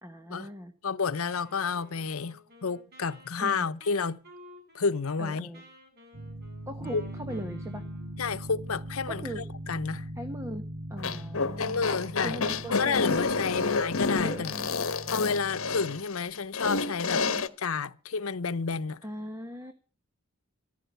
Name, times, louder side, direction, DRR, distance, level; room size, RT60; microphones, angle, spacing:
voice 1, 0.0-0.7 3.4-3.7 5.2-5.6 6.7-7.8 9.1-9.4 10.2-10.6 10.9-11.8 12.2-13.1 13.5-13.8 14.2-14.7 17.1-17.5 19.0-19.7, equal, 15° right, 1.2 m, -39 dB
voice 2, 0.8-4.2 4.7-5.5 6.9-7.0 8.2-10.1 11.6-12.4 12.7-14.5 15.1-19.0, left 5 dB, 90° left, 0.8 m, -30 dB
Wind instrument woodwind instrument, 1.1-8.3, equal, 50° right, 7.8 m, -54 dB
sound 1, 6.1-16.0, right 1 dB, 70° right, 5.1 m, -41 dB
sound 2, 11.0-17.5, left 4 dB, 70° left, 1.2 m, -29 dB
14.5 x 12.0 x 6.8 m
head